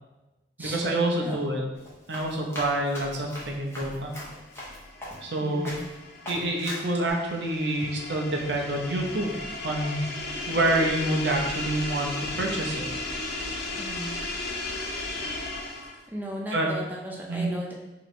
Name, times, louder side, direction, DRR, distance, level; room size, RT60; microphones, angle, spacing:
voice 1, 0.6-1.6 2.1-4.1 5.2-5.7 6.3-9.3 9.6-10.0 10.5-12.9 16.5-16.7 17.3-17.5, right 1 dB, 70° right, 1 dB, 0.6 m, -27 dB
Run, 1.8-5.4 5.7-5.9 6.3-7.1, left 1 dB, 15° left, 1.0 m, -39 dB
sound 1, 4.2-16.1, left 2 dB, 60° left, 0.5 m, -35 dB
voice 2, 5.4-5.9 13.8-14.2 16.1-17.7, right 1 dB, 10° right, -2 dB, 0.5 m, -36 dB
3.0 x 2.8 x 4.2 m, 1.0 s
head